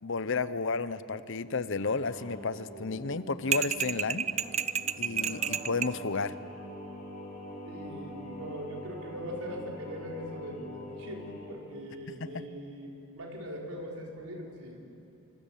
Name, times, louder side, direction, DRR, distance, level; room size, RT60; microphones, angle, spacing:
voice 1, 0.0-4.3 5.0-6.4 12.1-12.4, left 4 dB, 60° left, 14 dB, 0.8 m, -32 dB
Singing, 1.8-11.5, equal, 40° left, 6.3 m, -44 dB
sound 1, 3.5-6.0, right 8 dB, 30° right, 0.5 m, -30 dB
voice 2, 7.6-14.8, equal, 85° right, -1 dB, 4.7 m, -41 dB
27.0 x 25.5 x 7.4 m, 2.8 s
head